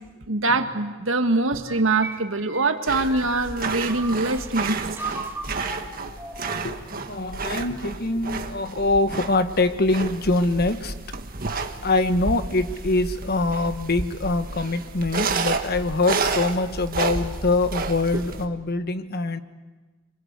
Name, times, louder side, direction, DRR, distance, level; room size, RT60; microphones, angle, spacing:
voice 1, 0.3-4.8, right 2 dB, 80° right, 7 dB, 1.8 m, -23 dB
sound 1, 1.6-4.5 5.0-6.7, right 2 dB, 10° right, 2.2 m, -37 dB
sound 2, 2.9-18.5, right 4 dB, 50° right, 1.6 m, -31 dB
voice 2, 7.1-10.9 11.8-19.4, left 2 dB, 55° left, 10 dB, 1.3 m, -24 dB
27.0 x 24.0 x 8.3 m, 1.2 s
head